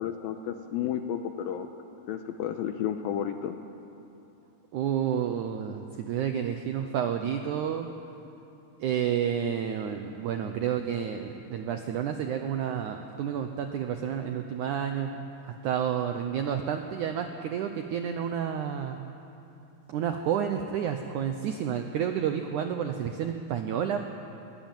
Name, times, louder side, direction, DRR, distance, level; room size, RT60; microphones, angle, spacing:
voice 1, 0.0-1.7 2.1-3.6, left 9 dB, 80° left, 7 dB, 2.4 m, -32 dB
voice 2, 4.7-7.9 8.8-15.1 15.4-19.0 19.9-24.0, right 8 dB, 90° right, 6 dB, 1.7 m, -30 dB
22.0 x 18.0 x 9.0 m, 2.8 s
omnidirectional pair, 4.7 m